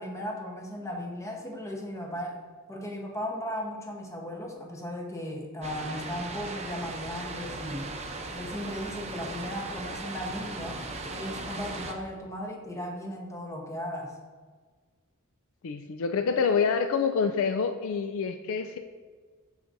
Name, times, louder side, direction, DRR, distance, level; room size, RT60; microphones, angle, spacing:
voice 1, 0.0-2.4 2.7-7.9 8.3-10.8 11.1-14.1, equal, 15° left, 0 dB, 1.0 m, -36 dB
sound 1, 5.6-11.9, right 2 dB, 30° right, 0.7 m, -38 dB
voice 2, 15.6-18.8, left 5 dB, 65° left, 7 dB, 0.4 m, -27 dB
14.0 x 4.9 x 2.6 m, 1.5 s
head